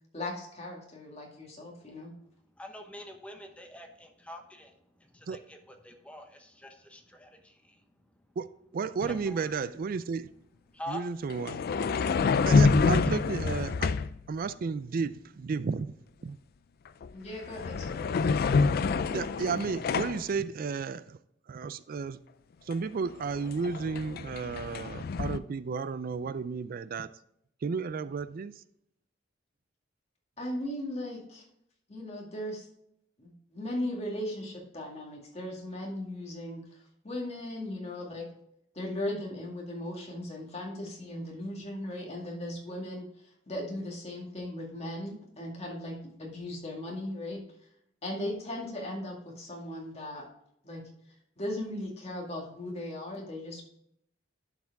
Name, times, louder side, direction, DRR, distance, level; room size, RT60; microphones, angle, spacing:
voice 1, 0.1-2.1 17.1-18.1 30.4-31.4 31.9-32.7 33.2-38.3 38.7-43.1 43.5-47.4 48.0-50.3 50.6-50.8 51.4-53.6, left 1 dB, 35° left, 2.1 m, -37 dB
voice 2, 2.6-4.7 5.0-7.8 9.3-9.7 10.7-11.1 12.9-13.0, left 1 dB, 5° left, 1.0 m, -45 dB
voice 3, 8.7-10.3 10.9-11.6 12.5-13.9 14.3-15.9 16.2-16.4 19.1-21.2 21.5-22.2 22.7-27.1 27.6-28.6, right 5 dB, 50° right, 0.4 m, -33 dB
sound 1, 9.0-9.2 11.3-14.2 16.9-17.1 17.4-20.3 22.7-22.8 23.1-25.4, left 4 dB, 50° left, 0.4 m, -27 dB
11.5 x 4.8 x 3.5 m
head